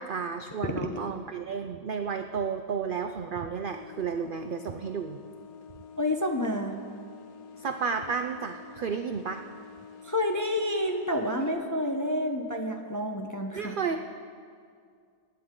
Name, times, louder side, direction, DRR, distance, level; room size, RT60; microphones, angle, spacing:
voice 1, 0.0-5.2 7.6-9.4 13.5-14.1, right 6 dB, 65° right, 6 dB, 0.5 m, -32 dB
sound 1, 3.7-11.5, left 6 dB, 80° left, 1.3 m, -48 dB
voice 2, 6.0-6.7 10.0-13.8, left 1 dB, 20° left, 3 dB, 0.5 m, -29 dB
24.5 x 10.0 x 3.8 m, 2.2 s
omnidirectional pair, 1.5 m